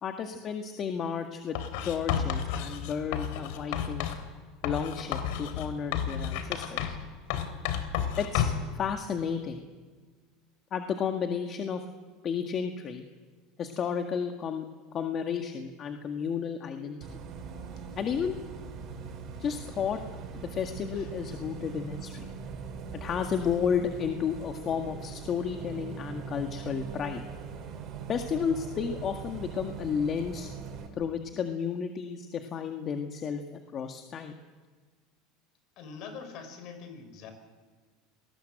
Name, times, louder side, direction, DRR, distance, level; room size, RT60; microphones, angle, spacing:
voice 1, 0.0-1.6 1.8-4.1 4.6-7.0 8.2-8.5 8.7-9.6 10.7-11.8 12.2-13.1 13.6-14.6 14.9-17.0 18.0-18.3 19.4-20.0 20.4-22.3 22.9-27.2 28.1-30.5 31.0-34.3, left 7 dB, 40° left, 5 dB, 1.8 m, -32 dB
Writing, 1.5-4.2 4.6-7.0 7.3-8.7, left 8 dB, 75° left, 3.3 m, -31 dB
Bus, 17.0-30.9, right 6 dB, 50° right, 5.7 m, -41 dB
voice 2, 35.8-37.3, left 5 dB, 55° left, 8 dB, 5.8 m, -44 dB
27.5 x 19.5 x 7.9 m, 1.4 s
supercardioid pair, 115°, 0 cm